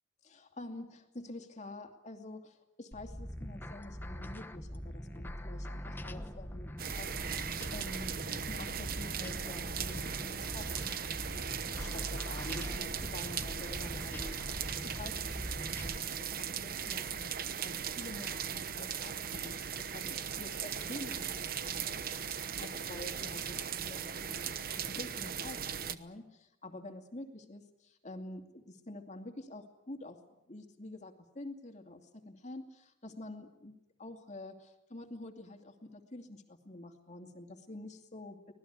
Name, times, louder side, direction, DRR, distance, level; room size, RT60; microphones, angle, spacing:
voice 1, 0.2-30.2 30.5-38.5, left 2 dB, 35° left, 4 dB, 2.6 m, -48 dB
sound 1, 2.9-16.0, equal, 10° left, 1.2 m, -43 dB
sound 2, 6.8-26.0, right 7 dB, 50° right, 1.0 m, -38 dB
25.5 x 19.0 x 8.2 m, 0.90 s
head